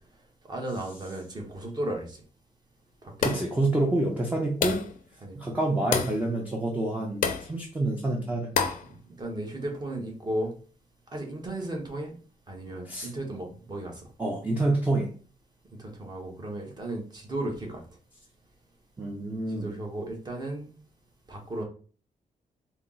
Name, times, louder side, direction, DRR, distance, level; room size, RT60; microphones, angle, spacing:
voice 1, 0.5-2.2 3.0-3.5 5.2-5.6 8.9-10.5 11.1-12.2 12.5-14.0 15.7-17.8 19.6-20.7 21.3-21.6, right 1 dB, 30° right, 1 dB, 1.0 m, -35 dB
sound 1, 3.2-3.6 4.6-5.0 5.9-6.2 7.2-7.5 8.5-8.9, left 6 dB, 80° left, 0.5 m, -27 dB
voice 2, 3.2-4.8 5.3-8.5 12.9-13.1 14.2-15.1 19.0-19.8, right 2 dB, 10° right, -1 dB, 0.5 m, -27 dB
4.2 x 2.0 x 3.8 m, 0.41 s
wide cardioid pair, 160°, 14 cm